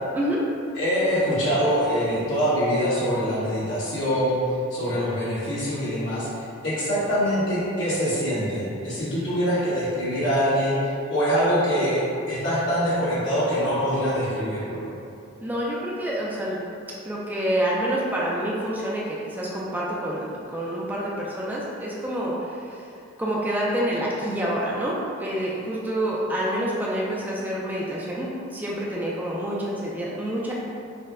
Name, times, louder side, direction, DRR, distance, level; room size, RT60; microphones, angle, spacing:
voice 1, 0.7-4.4 4.7-6.3 6.6-10.8 11.1-14.8, equal, 60° left, -11 dB, 1.5 m, -24 dB
voice 2, 15.4-16.6 17.1-20.2 20.5-22.9 23.2-30.5, right 1 dB, 10° right, -6 dB, 0.3 m, -27 dB
4.3 x 2.1 x 3.6 m, 2.6 s
head